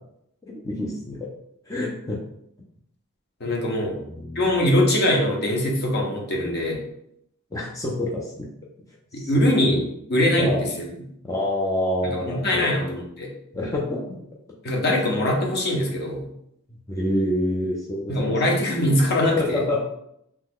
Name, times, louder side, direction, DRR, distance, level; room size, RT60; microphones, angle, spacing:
voice 1, 0.4-1.3 1.7-2.2 3.9-4.4 7.5-8.5 9.1-9.3 9.7-9.8 10.4-10.7 11.2-12.8 13.5-14.2 16.9-18.4 19.4-19.8, left 1 dB, 15° left, -3 dB, 0.4 m, -27 dB
voice 2, 3.4-4.0 4.4-6.8 9.1-9.8 10.1-10.9 12.3-13.3 14.6-16.3 18.1-19.6, left 1 dB, 50° left, 0 dB, 0.7 m, -22 dB
3.0 x 2.2 x 3.6 m, 0.75 s
head